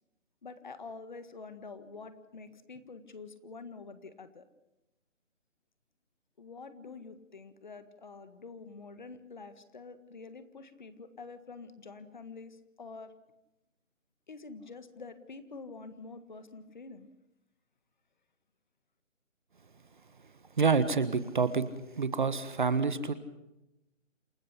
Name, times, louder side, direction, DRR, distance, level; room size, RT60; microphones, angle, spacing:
voice 1, 0.4-4.5 6.4-13.1 14.3-17.1, left 4 dB, 35° left, 12 dB, 1.8 m, -47 dB
voice 2, 20.6-21.7 21.9-23.1, right 5 dB, 40° right, 14 dB, 1.4 m, -27 dB
28.0 x 14.0 x 8.4 m, 0.92 s
hypercardioid pair, 170°, 38 cm